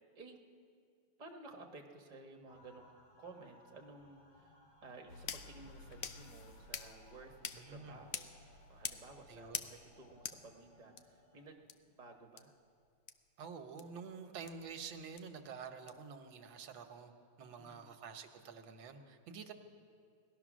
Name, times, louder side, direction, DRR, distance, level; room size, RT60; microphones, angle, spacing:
voice 1, 1.2-2.9 3.2-12.6 17.6-17.9, right 3 dB, 25° right, 2 dB, 1.1 m, -55 dB
sound 1, 2.5-11.5, left 1 dB, 90° left, 3.3 m, -65 dB
sound 2, 5.1-11.0 11.7-11.8 12.4-12.5 13.1-13.2 13.8-13.9 14.5-14.6 15.2-15.3 15.9-16.0, left 8 dB, 65° left, 0.9 m, -46 dB
voice 2, 7.5-8.0 9.3-9.7 13.4-19.5, right 6 dB, 90° right, 6 dB, 1.7 m, -49 dB
18.5 x 12.5 x 6.2 m, 2.3 s
omnidirectional pair, 2.1 m